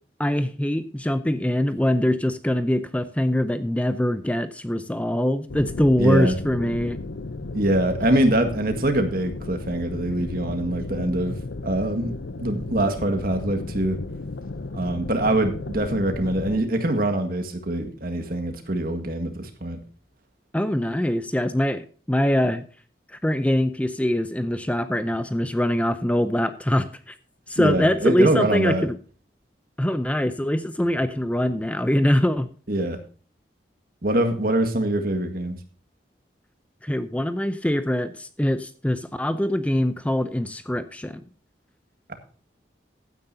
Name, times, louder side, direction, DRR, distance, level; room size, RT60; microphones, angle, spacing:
voice 1, 0.2-7.0 15.3-15.4 20.5-22.6 23.1-27.2 27.5-28.9 29.8-32.5 36.8-41.2, left 1 dB, 10° left, 11 dB, 0.5 m, -23 dB
sound 1, 5.5-16.6, left 2 dB, 85° left, 0.7 m, -34 dB
voice 2, 6.0-6.4 7.5-14.0 14.7-19.8 27.6-28.9 32.7-33.0 34.0-35.6 42.1-42.2, right 1 dB, 55° right, 6 dB, 1.8 m, -24 dB
15.5 x 9.4 x 2.7 m, 0.40 s
head